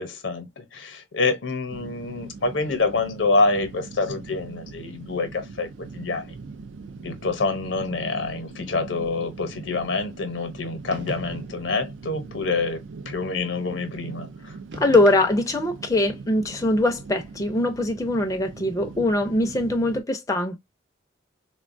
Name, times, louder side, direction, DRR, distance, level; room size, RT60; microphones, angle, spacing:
voice 1, 0.0-6.3 7.0-14.6, left 3 dB, 80° left, 0.7 m, -27 dB
sound 1, 1.7-20.0, right 4 dB, 90° right, 0.4 m, -41 dB
sound 2, 10.9-11.6 14.7-15.7, right 1 dB, 65° right, 0.8 m, -40 dB
voice 2, 14.7-20.6, left 1 dB, 20° left, 0.4 m, -22 dB
3.5 x 2.2 x 2.5 m
head